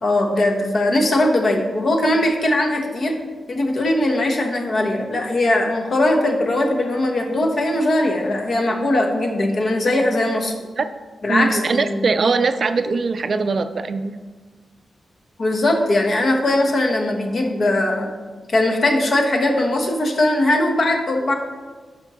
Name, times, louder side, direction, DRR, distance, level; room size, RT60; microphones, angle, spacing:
voice 1, 0.0-3.1 3.5-10.5 11.2-12.0 15.4-18.1 18.5-21.3, left 1 dB, 50° left, 2 dB, 1.1 m, -20 dB
voice 2, 11.3-14.2, right 4 dB, 50° right, 10 dB, 0.3 m, -21 dB
11.5 x 4.4 x 3.0 m, 1.4 s
cardioid pair, 95°, 0 cm